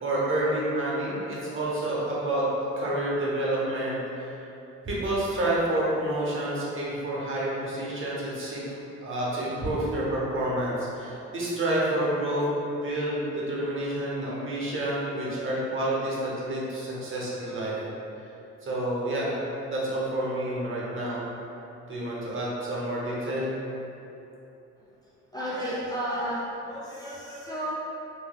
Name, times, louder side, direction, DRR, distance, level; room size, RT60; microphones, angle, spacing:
voice 1, 0.0-2.5 2.8-4.4 4.8-8.6 9.0-12.4 12.8-17.7 18.6-19.4 19.7-21.3 21.9-23.5, right 1 dB, 45° right, -6 dB, 0.8 m, -29 dB
voice 2, 25.3-27.7, equal, 15° left, -8 dB, 0.3 m, -32 dB
3.0 x 2.6 x 2.3 m, 3.0 s
cardioid pair, 90°, 30 cm